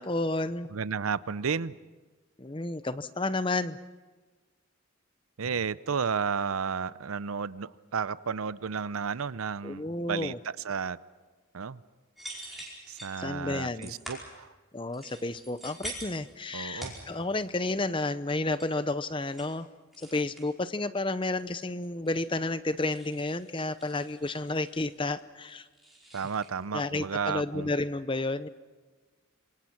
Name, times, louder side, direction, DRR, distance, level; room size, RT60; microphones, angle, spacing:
voice 1, 0.0-0.7 2.4-3.8 9.6-10.4 13.2-13.9 14.7-19.7 20.0-25.7 26.7-28.5, left 2 dB, 25° left, 14 dB, 0.7 m, -31 dB
voice 2, 0.7-1.7 5.4-11.0 11.5-11.8 12.9-14.5 16.5-16.9 26.1-27.7, right 6 dB, 85° right, 17 dB, 0.6 m, -32 dB
sound 1, 12.2-13.2 13.8-14.3 14.9-16.3 16.7-17.5 17.8-18.0 18.3-18.7 19.1-19.5 19.9-20.5 21.4-22.4 22.7-25.2 25.5-26.5, right 1 dB, ahead, 5.0 m, -45 dB
27.0 x 24.5 x 6.0 m, 1.3 s
head